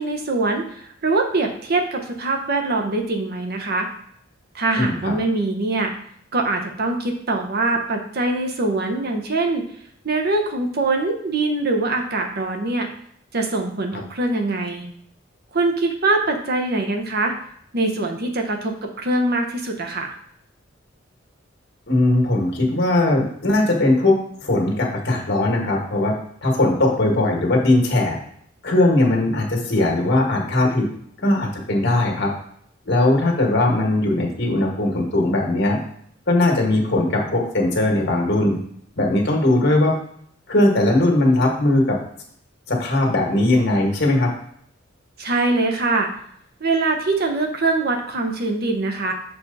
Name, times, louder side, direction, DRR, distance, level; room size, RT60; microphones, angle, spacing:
voice 1, 0.0-3.9 4.5-5.9 6.3-9.6 10.0-12.9 13.3-14.9 15.5-17.3 17.7-20.1 45.2-46.1 46.6-49.1, right 2 dB, 55° right, 3 dB, 1.0 m, -23 dB
voice 2, 4.8-5.1 21.9-26.2 26.4-28.2 28.6-30.8 31.2-32.3 32.9-35.8 36.3-38.6 39.0-39.9 40.5-42.0 42.7-44.3, left 2 dB, 60° left, 0 dB, 1.8 m, -19 dB
6.8 x 4.7 x 4.1 m, 0.66 s
head